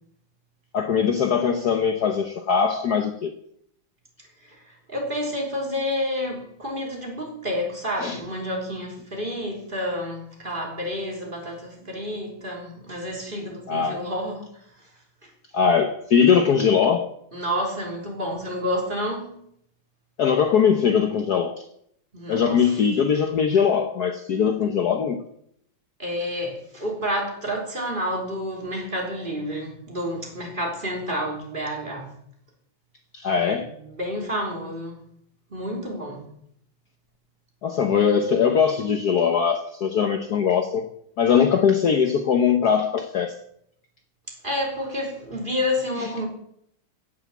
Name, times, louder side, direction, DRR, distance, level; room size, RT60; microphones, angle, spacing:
voice 1, 0.7-3.3 8.0-8.2 13.7-14.0 15.5-17.1 20.2-21.6 22.3-25.2 33.1-33.7 37.6-40.9 41.2-43.3, left 7 dB, 55° left, 6 dB, 1.3 m, -21 dB
voice 2, 4.4-14.6 15.2-15.3 17.3-19.4 22.1-22.7 26.0-32.1 33.4-35.0 35.5-36.3 44.4-46.3, equal, 25° right, -1 dB, 3.5 m, -29 dB
16.0 x 7.2 x 7.2 m, 0.71 s
omnidirectional pair, 2.3 m